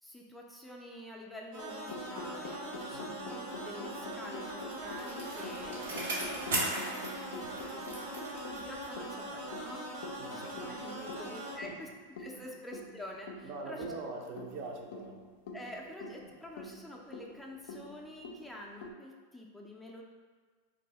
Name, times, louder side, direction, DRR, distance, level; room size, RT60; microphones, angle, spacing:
voice 1, 0.0-7.9 8.3-9.9 10.3-11.9 12.1-13.9 15.5-20.0, left 1 dB, 5° left, -2 dB, 0.4 m, -48 dB
sound 1, 1.5-11.6, right 1 dB, 70° right, 1.2 m, -42 dB
sound 2, 1.9-18.9, left 2 dB, 70° left, 0.4 m, -47 dB
Bicycle, 4.2-9.1 9.4-9.5, right 1 dB, 90° right, 1.0 m, -38 dB
voice 2, 10.1-11.1 11.5-11.8 12.3-12.6 13.4-15.2, right 3 dB, 50° right, 0 dB, 0.6 m, -44 dB
2.7 x 2.6 x 4.2 m, 1.5 s
hypercardioid pair, 125°, 0 cm